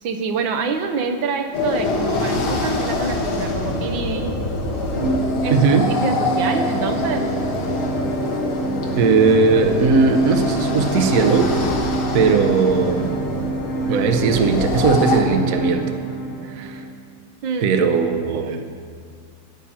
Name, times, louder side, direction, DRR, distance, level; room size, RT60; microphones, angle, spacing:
voice 1, 0.0-4.4 5.4-7.3 17.4-17.7, right 5 dB, 70° right, 5 dB, 1.5 m, -26 dB
sound 1, 1.5-15.2, left 2 dB, 90° left, 2.2 m, -25 dB
sound 2, 4.9-16.9, right 2 dB, 45° left, 1.8 m, -26 dB
voice 2, 5.5-5.9 9.0-11.5 12.1-13.1 13.9-15.8 16.5-16.8 17.6-18.7, right 5 dB, 55° right, 6 dB, 1.0 m, -18 dB
14.5 x 5.8 x 8.6 m, 2.1 s
omnidirectional pair, 2.2 m